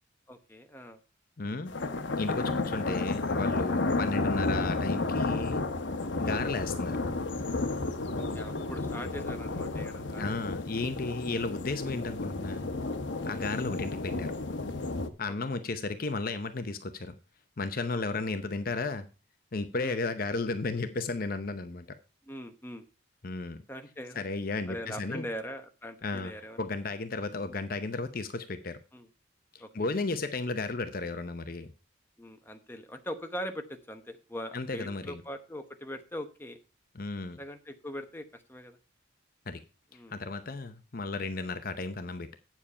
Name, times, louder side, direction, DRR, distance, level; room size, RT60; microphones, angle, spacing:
voice 1, 0.3-1.0 6.2-6.4 8.2-10.4 13.2-13.5 15.3-15.6 17.9-18.0 19.8-20.0 22.3-22.8 23.7-24.2 24.7-26.6 28.9-29.1 29.6-29.7 32.2-36.6 37.4-38.8 39.9-40.1, equal, 10° left, 7 dB, 1.0 m, -41 dB
voice 2, 1.4-1.7 2.1-5.6 6.2-7.0 10.2-12.7 13.2-14.3 15.2-17.1 17.6-19.1 19.5-21.9 23.2-23.6 24.2-25.3 26.0-26.3 26.6-28.8 29.5-31.7 34.5-35.2 36.9-37.4 39.5-39.6 40.1-42.4, left 3 dB, 50° left, 9 dB, 0.7 m, -34 dB
sound 1, 1.7-15.1, left 3 dB, 70° left, 1.0 m, -32 dB
8.7 x 7.4 x 5.5 m, 0.32 s
head